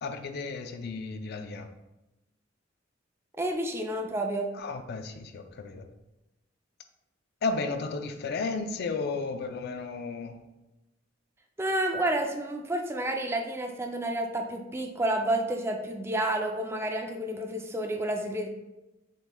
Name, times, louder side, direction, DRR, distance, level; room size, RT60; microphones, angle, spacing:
voice 1, 0.0-1.7 4.5-5.9 7.4-10.4, left 4 dB, 55° left, 8 dB, 0.4 m, -33 dB
voice 2, 3.4-4.5 11.6-18.5, right 1 dB, 15° right, 3 dB, 0.3 m, -30 dB
5.2 x 3.1 x 2.2 m, 0.99 s
head